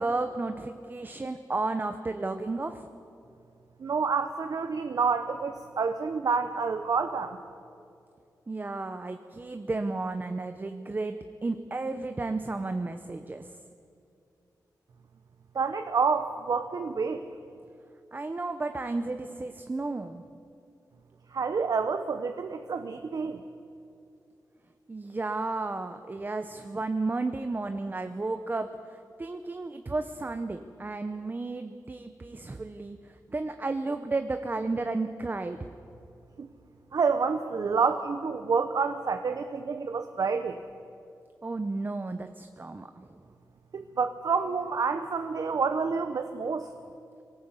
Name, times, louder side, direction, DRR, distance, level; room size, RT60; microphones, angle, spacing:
voice 1, 0.0-2.9 8.5-13.6 18.1-20.2 24.9-35.7 41.4-43.2, right 3 dB, 25° right, 8 dB, 0.8 m, -33 dB
voice 2, 3.8-7.4 15.5-17.2 21.3-23.4 36.4-36.5 36.9-40.6 43.7-46.7, right 5 dB, 60° right, 8 dB, 0.9 m, -28 dB
21.0 x 18.0 x 8.2 m, 2.6 s
wide cardioid pair, 115°, 7 cm